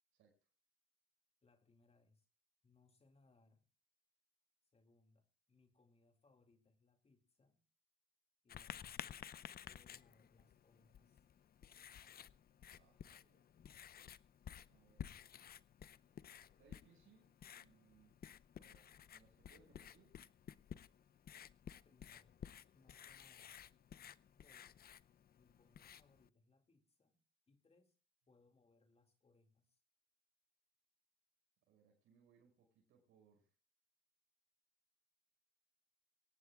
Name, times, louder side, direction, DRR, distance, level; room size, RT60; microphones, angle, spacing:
voice 1, 1.4-2.3 2.6-3.7 4.7-7.6 8.4-9.4 9.7-11.3 21.8-22.4 22.7-23.7 24.3-24.7 25.4-27.2 27.5-28.0 28.3-29.8, left 3 dB, 30° left, 6 dB, 2.3 m, -73 dB
Writing, 8.5-26.3, left 9 dB, 50° left, 0.6 m, -55 dB
voice 2, 12.7-13.5 14.7-15.2 16.6-18.2 18.6-20.2 31.7-33.5, right 6 dB, 90° right, 2 dB, 5.7 m, -71 dB
23.0 x 18.0 x 2.3 m, 0.31 s
cardioid pair, 90°, 20 cm